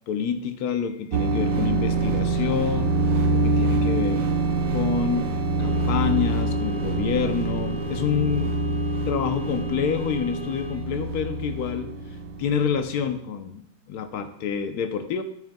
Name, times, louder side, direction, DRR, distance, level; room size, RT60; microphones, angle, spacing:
voice 1, 0.1-3.0 3.3-4.3 4.7-5.3 5.6-8.6 9.1-11.9 12.4-15.2, left 7 dB, 65° left, 8 dB, 1.1 m, -27 dB
sound 1, 1.1-12.8, right 2 dB, 80° right, 1.4 m, -25 dB
sound 2, 5.6-10.7, left 7 dB, 35° right, 0.7 m, -39 dB
sound 3, 6.8-13.1, right 4 dB, 55° right, 2.5 m, -46 dB
9.8 x 8.3 x 2.2 m, 0.76 s
omnidirectional pair, 1.9 m